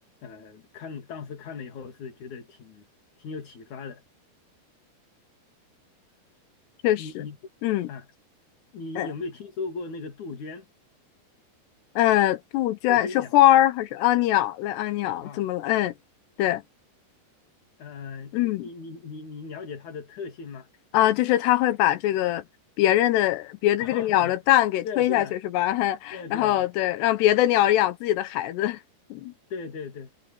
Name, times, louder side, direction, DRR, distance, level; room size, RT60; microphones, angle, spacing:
voice 1, 0.2-2.9 3.2-4.0 7.0-7.4 7.9-8.1 8.7-10.7 12.9-13.4 15.2-15.5 17.8-20.7 23.8-24.4 24.8-25.4 26.1-26.7 29.5-30.1, left 4 dB, 50° left, 3.8 m, -37 dB
voice 2, 6.8-7.2 7.6-7.9 9.0-9.1 12.0-15.9 16.4-16.6 18.3-18.6 20.9-22.4 22.8-28.8 29.1-29.3, left 14 dB, 90° left, 3.2 m, -22 dB
omnidirectional pair, 4.7 m